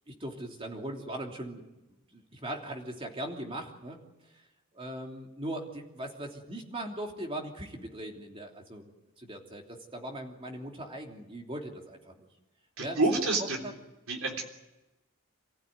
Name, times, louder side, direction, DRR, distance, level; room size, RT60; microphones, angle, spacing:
voice 1, 0.2-1.6 2.1-4.0 4.7-8.9 9.2-12.3 12.8-13.0 13.6-13.7, right 1 dB, 25° right, 1 dB, 3.1 m, -39 dB
voice 2, 12.8-13.6 14.1-14.5, right 2 dB, 75° right, 2 dB, 3.4 m, -28 dB
28.0 x 15.5 x 9.4 m, 1.0 s
head